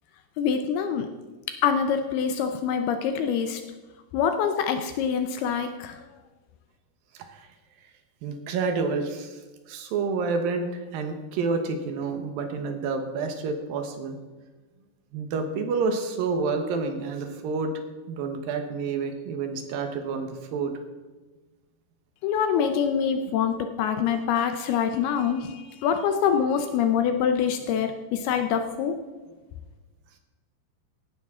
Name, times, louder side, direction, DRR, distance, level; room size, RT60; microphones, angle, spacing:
voice 1, 0.4-1.1 1.5-3.6 4.1-6.0 22.2-29.0, left 7 dB, 75° left, 7 dB, 2.5 m, -25 dB
voice 2, 7.1-7.5 8.2-9.4 9.7-14.2 15.1-17.7 18.1-20.8, right 4 dB, 70° right, 6 dB, 2.5 m, -29 dB
17.0 x 10.5 x 3.7 m, 1.3 s
omnidirectional pair, 5.0 m